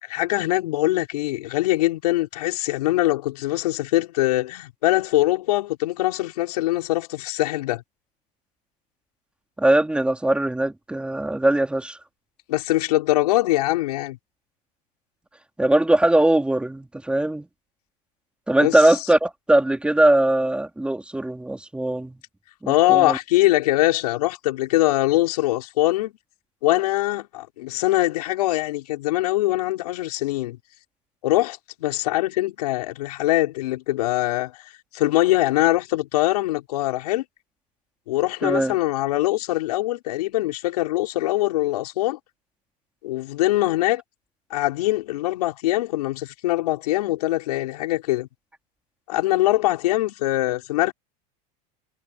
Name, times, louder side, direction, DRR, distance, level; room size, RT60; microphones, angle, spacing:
voice 1, 0.0-7.8 12.5-14.2 18.6-18.8 22.7-26.1 26.6-30.6 31.2-34.6 34.9-37.2 38.1-42.2 43.0-44.0 44.5-48.3 49.1-50.9, left 17 dB, 85° left, 6.1 m, -22 dB
voice 2, 9.6-12.0 15.6-17.5 18.5-22.2 22.6-23.2 38.4-38.7, right 1 dB, 5° right, 3.1 m, -20 dB
supercardioid pair, 130°, 19 cm